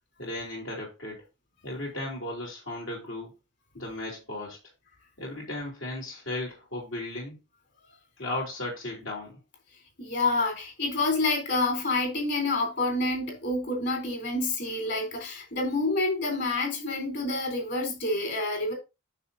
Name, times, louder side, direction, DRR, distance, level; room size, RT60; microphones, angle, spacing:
voice 1, 0.2-1.2 1.6-3.3 3.7-4.6 5.2-7.3 8.2-9.4, left 1 dB, 70° left, 3.0 m, -35 dB
voice 2, 10.0-18.7, left 2 dB, 50° left, 3.4 m, -28 dB
9.7 x 6.7 x 2.7 m
head